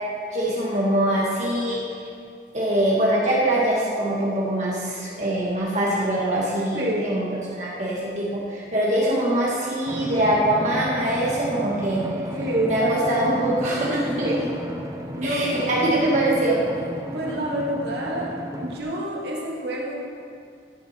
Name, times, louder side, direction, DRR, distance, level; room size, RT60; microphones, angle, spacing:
voice 1, 0.3-1.8 2.5-7.2 7.5-12.0 12.6-14.3 15.2-16.6, right 1 dB, 40° right, -6 dB, 2.0 m, -23 dB
voice 2, 6.7-7.2 12.3-13.3 14.2-14.4 15.2-15.8 17.1-18.3 18.6-19.9, equal, 65° right, -4 dB, 2.7 m, -27 dB
Drum, 9.9-18.8, right 1 dB, 20° right, 0.7 m, -34 dB
15.0 x 9.3 x 4.5 m, 2.3 s
head